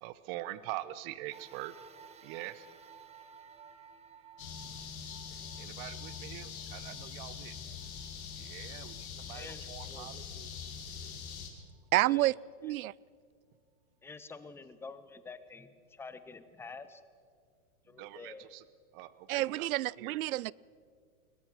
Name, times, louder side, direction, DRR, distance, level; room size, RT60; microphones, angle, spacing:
voice 1, 0.0-1.7 2.2-2.7 5.6-7.6 8.3-10.5 17.9-18.7 18.9-20.3, right 15 dB, 40° right, 1.1 m, -44 dB
sound 1, 1.3-9.9 10.5-10.6 11.7-11.8, right 6 dB, 15° right, 1.1 m, -57 dB
sound 2, 4.4-11.5, left 7 dB, 70° left, 4.0 m, -43 dB
voice 2, 7.6-8.0 9.3-10.1 12.0-12.3 12.6-12.7 14.0-17.0 17.9-18.5, left 4 dB, 5° left, 0.6 m, -48 dB
voice 3, 11.9-12.3 12.6-12.9 19.3-20.5, right 16 dB, 70° right, 0.5 m, -29 dB
21.5 x 21.0 x 6.1 m
hypercardioid pair, 130°, 44 cm